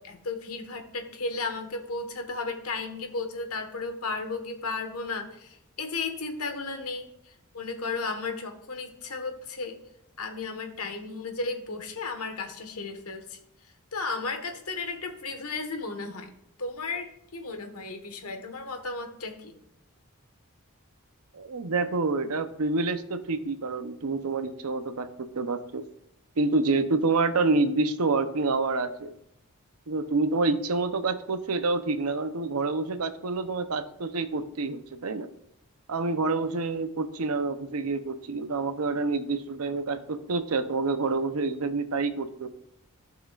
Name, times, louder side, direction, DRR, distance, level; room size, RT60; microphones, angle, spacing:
voice 1, 0.0-7.1 7.5-9.8 10.2-13.4 13.9-16.3 16.6-19.5, left 3 dB, 85° left, 5 dB, 1.4 m, -34 dB
voice 2, 21.3-25.8 26.4-29.1 29.9-35.3 35.9-42.5, right 3 dB, 80° right, 10 dB, 0.8 m, -27 dB
15.5 x 6.0 x 2.4 m, 0.79 s
head